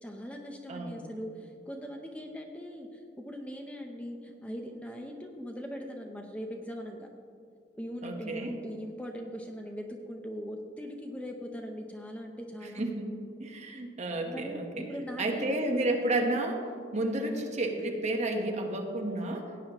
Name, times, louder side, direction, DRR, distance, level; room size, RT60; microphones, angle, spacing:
voice 1, 0.0-7.1 7.8-12.9 14.3-15.8 16.2-16.3, equal, 5° left, 2 dB, 0.7 m, -40 dB
voice 2, 0.7-1.0 8.0-8.5 12.7-14.8 15.2-16.6 16.9-19.5, right 1 dB, 40° right, 2 dB, 1.2 m, -31 dB
17.0 x 9.2 x 3.0 m, 2.4 s
head